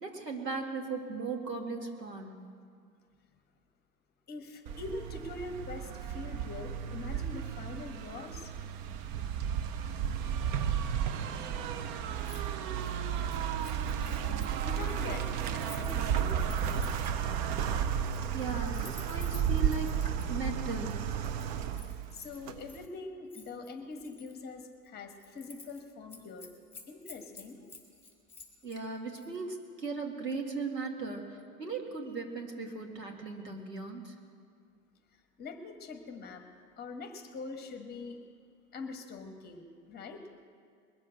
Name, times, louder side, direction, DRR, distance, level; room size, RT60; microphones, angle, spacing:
voice 1, 0.0-2.5 18.3-21.0 28.6-34.1, right 4 dB, 85° right, 1 dB, 2.3 m, -38 dB
voice 2, 4.3-8.5 14.6-16.5 21.9-26.5 26.9-27.7 35.4-36.4 36.8-38.2 38.7-40.2, left 3 dB, 20° left, 5 dB, 1.4 m, -43 dB
sound 1, 4.7-22.8, right 8 dB, 30° right, 0.6 m, -33 dB
Keys jangling, 12.2-12.4 12.7-17.2 17.9-20.3 20.9-22.9 23.3-24.4 24.7-24.9 25.2-25.8 26.1-28.8 29.2-29.4, left 3 dB, 5° left, 2.9 m, -53 dB
22.0 x 7.3 x 6.5 m, 2.1 s
figure-of-eight pair, 100°, 48 cm